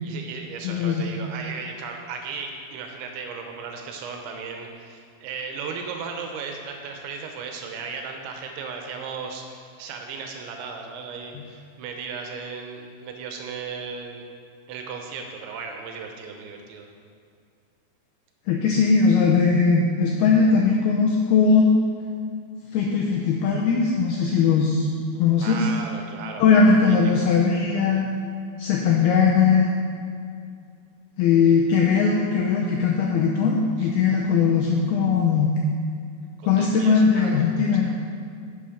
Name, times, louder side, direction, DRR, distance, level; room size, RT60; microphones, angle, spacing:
voice 1, 0.0-14.3 14.7-16.9 25.4-26.6 26.9-27.3 33.8-33.9 36.4-38.0, right 5 dB, 80° right, 3 dB, 3.1 m, -36 dB
voice 2, 0.6-1.1 18.5-21.7 22.7-24.9 25.2-25.7 26.4-28.1 28.6-29.7 31.2-35.5 36.4-37.9, left 5 dB, 80° left, -1 dB, 2.2 m, -19 dB
11.5 x 7.0 x 5.0 m, 2.3 s
omnidirectional pair, 5.3 m